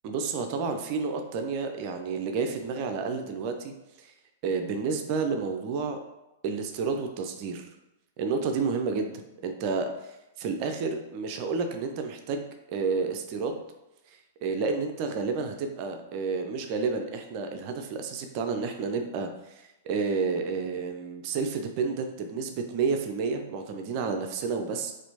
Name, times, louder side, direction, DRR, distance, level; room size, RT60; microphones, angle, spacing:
voice 1, 0.0-4.1 4.4-6.0 6.4-7.7 8.2-9.1 9.4-10.1 10.4-13.6 14.4-24.9, right 4 dB, 40° right, 5 dB, 0.4 m, -30 dB
4.2 x 2.5 x 2.8 m, 0.91 s
figure-of-eight pair, 100°, 0 cm